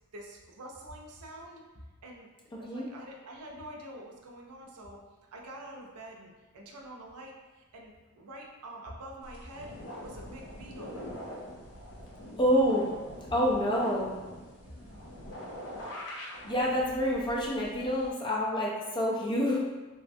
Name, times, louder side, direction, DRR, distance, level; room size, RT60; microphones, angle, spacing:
voice 1, 0.1-1.6 2.0-2.3 2.6-5.0 5.3-11.0 14.6-15.0 16.4-16.6, right 1 dB, 90° right, 0 dB, 0.5 m, -47 dB
sound 1, 9.2-18.1, equal, 80° left, 0.7 m, -44 dB
voice 2, 12.4-12.9 13.3-14.1 16.4-19.6, equal, 20° left, -4 dB, 0.4 m, -27 dB
3.2 x 2.1 x 2.6 m, 1.2 s
head